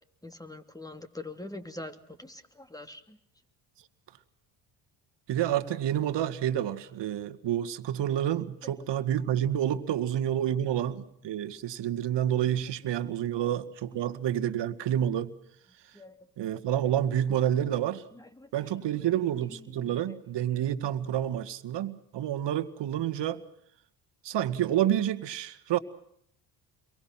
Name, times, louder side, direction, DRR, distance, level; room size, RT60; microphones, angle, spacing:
voice 1, 0.2-3.2 13.0-13.4 15.9-16.3 18.1-18.7 19.0-19.1 19.4-20.2, left 2 dB, 5° left, 8 dB, 2.9 m, -45 dB
voice 2, 5.3-15.3 16.4-18.0 18.5-23.4 24.2-25.8, right 11 dB, 60° right, 10 dB, 2.0 m, -29 dB
29.5 x 23.0 x 6.0 m, 0.73 s
supercardioid pair, 70°, 49 cm